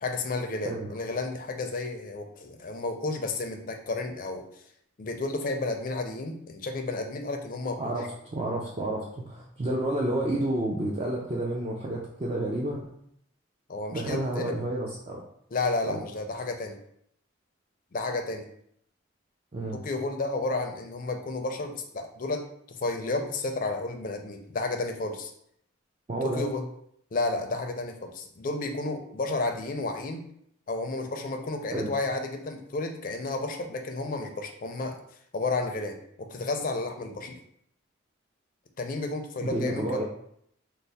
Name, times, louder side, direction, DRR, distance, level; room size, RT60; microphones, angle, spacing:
voice 1, 0.0-4.4 5.0-7.9 13.7-14.5 15.5-16.8 17.9-18.5 19.7-22.5 22.8-25.3 26.2-26.6 27.1-30.2 30.7-35.0 35.3-37.4 38.8-40.0, left 2 dB, 45° left, 4 dB, 0.4 m, -32 dB
voice 2, 7.8-12.9 13.9-15.2 15.8-16.0 19.5-19.8 26.1-26.5 31.7-31.9 39.4-40.0, right 1 dB, 30° right, -3 dB, 0.3 m, -30 dB
3.2 x 2.0 x 4.0 m, 0.70 s
head